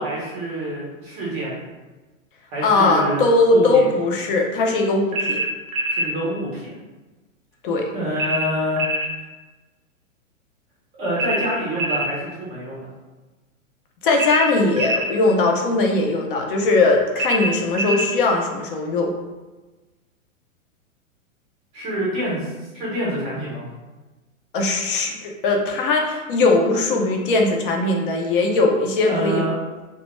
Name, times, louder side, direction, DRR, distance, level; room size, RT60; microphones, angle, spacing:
voice 1, 0.0-1.5 2.5-3.8 5.9-6.7 7.9-8.9 11.0-12.9 21.7-23.6 29.0-29.5, right 1 dB, 15° right, -6 dB, 0.5 m, -26 dB
voice 2, 2.6-5.4 7.6-7.9 14.0-19.1 24.5-29.4, left 3 dB, 40° left, 1 dB, 0.4 m, -19 dB
sound 1, 5.1-6.1 8.2-9.1 11.2-12.1 14.2-15.1 17.2-18.1, right 1 dB, 90° right, 0.6 m, -24 dB
2.1 x 2.1 x 2.9 m, 1.2 s
hypercardioid pair, 140°, 41 cm